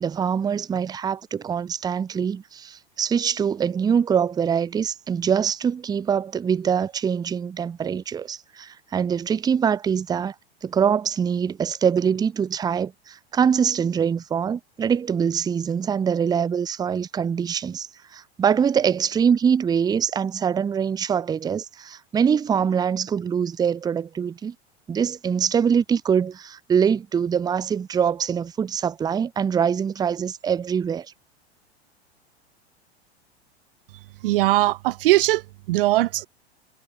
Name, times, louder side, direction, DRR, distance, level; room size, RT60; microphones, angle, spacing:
voice 1, 0.0-10.3 10.6-24.5 24.9-31.1, right 7 dB, 10° right, 0.5 m, -24 dB
voice 2, 34.2-36.3, right 17 dB, 60° right, 0.5 m, -20 dB
figure-of-eight pair, 90°, 33 cm